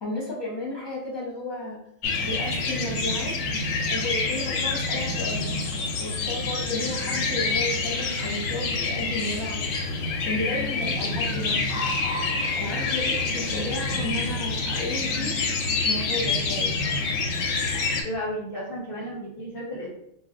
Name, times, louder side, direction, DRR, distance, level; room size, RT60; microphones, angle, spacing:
voice 1, 0.0-1.8 2.2-3.3 3.9-5.5 6.0-9.7 10.2-11.6 12.5-16.7, left 1 dB, 20° left, -5 dB, 0.9 m, -33 dB
sound 1, 2.0-18.0, left 3 dB, 90° left, 1.0 m, -27 dB
voice 2, 17.7-19.9, equal, 50° left, -5 dB, 0.8 m, -33 dB
2.4 x 2.2 x 3.7 m, 0.77 s
omnidirectional pair, 1.3 m